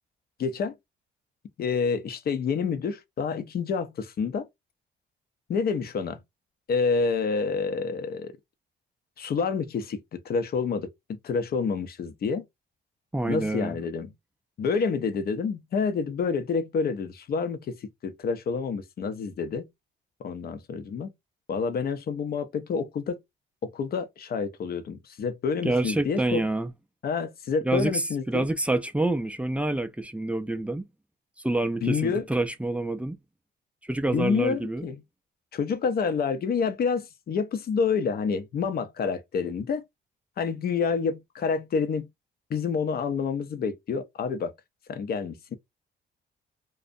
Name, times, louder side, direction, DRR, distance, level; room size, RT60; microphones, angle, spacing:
voice 1, 0.4-0.8 1.6-4.5 5.5-6.2 6.7-8.3 9.2-12.5 13.3-14.1 14.6-19.7 20.2-21.1 21.5-23.2 23.6-26.5 27.0-28.5 31.8-32.2 34.1-35.0 35.5-39.8 40.4-42.1 42.5-44.5 44.9-45.6, left 5 dB, 50° left, 0.5 m, -28 dB
voice 2, 13.1-13.8 25.6-26.7 27.6-30.8 31.4-33.2 33.8-34.9, right 2 dB, 5° right, 0.3 m, -27 dB
2.5 x 2.0 x 2.6 m
cardioid pair, 90°, 20 cm